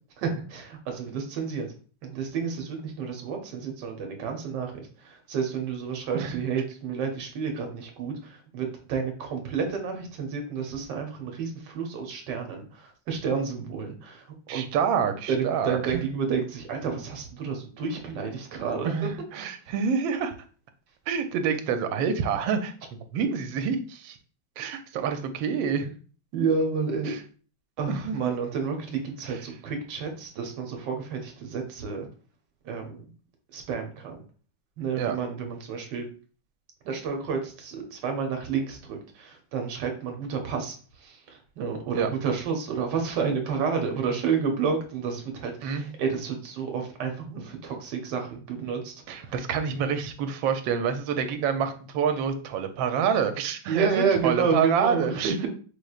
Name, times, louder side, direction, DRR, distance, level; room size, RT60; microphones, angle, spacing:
voice 1, 0.2-1.7 2.0-14.7 15.3-19.1 19.4-19.5 26.3-27.2 27.8-32.1 32.6-33.0 33.5-34.2 34.8-36.1 36.8-49.3 53.7-55.5, right 5 dB, 65° right, 3 dB, 1.4 m, -30 dB
voice 2, 14.5-16.1 18.8-20.3 21.1-22.7 23.1-24.2 24.6-25.9 27.1-27.2 27.9-28.3 29.3-29.4 35.0-35.2 41.9-42.1 45.6-45.8 49.1-55.3, right 7 dB, 85° right, 8 dB, 1.3 m, -27 dB
4.7 x 3.1 x 2.4 m, 0.39 s
omnidirectional pair, 2.1 m